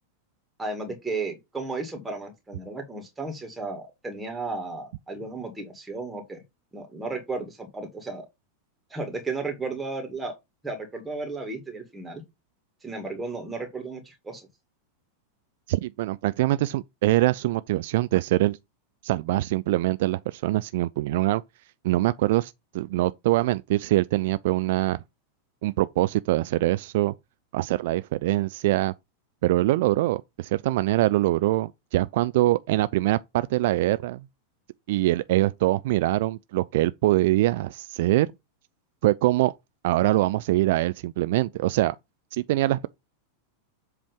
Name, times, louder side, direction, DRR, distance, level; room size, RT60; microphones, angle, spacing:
voice 1, 0.6-6.4 6.7-8.3 8.9-10.3 10.6-12.2 12.8-14.5, right 3 dB, 10° right, 2.2 m, -34 dB
voice 2, 15.7-18.6 19.0-21.4 21.8-25.0 25.6-27.1 27.5-28.9 29.4-34.2 34.9-38.3 39.0-39.5 39.8-42.0 42.3-42.9, right 17 dB, 50° right, 0.3 m, -23 dB
7.6 x 3.4 x 5.2 m
figure-of-eight pair, 90°, 0 cm